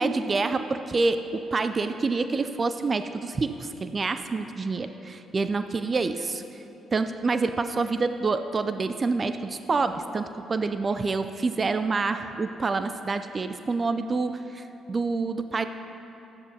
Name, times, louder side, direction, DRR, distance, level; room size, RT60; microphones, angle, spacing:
voice 1, 0.0-6.4 6.9-15.7, right 3 dB, 40° right, 9 dB, 0.4 m, -27 dB
11.5 x 9.2 x 2.8 m, 2.9 s
hypercardioid pair, 45°, 0 cm